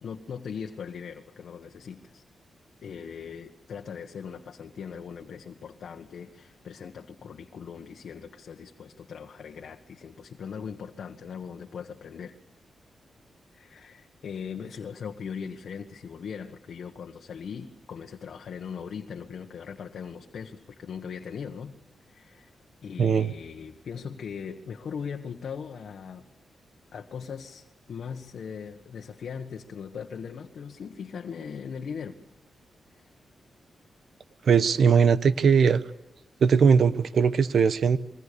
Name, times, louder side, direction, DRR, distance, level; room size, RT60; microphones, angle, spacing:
voice 1, 0.0-2.2 2.8-12.3 13.5-21.8 22.1-22.5 22.8-26.2 26.9-32.2, left 6 dB, 70° left, 3 dB, 1.4 m, -39 dB
voice 2, 23.0-23.3 34.5-35.8 36.4-38.0, right 6 dB, 65° right, 13 dB, 1.1 m, -20 dB
27.5 x 23.0 x 6.9 m, 0.96 s
cardioid pair, 95°, 0 cm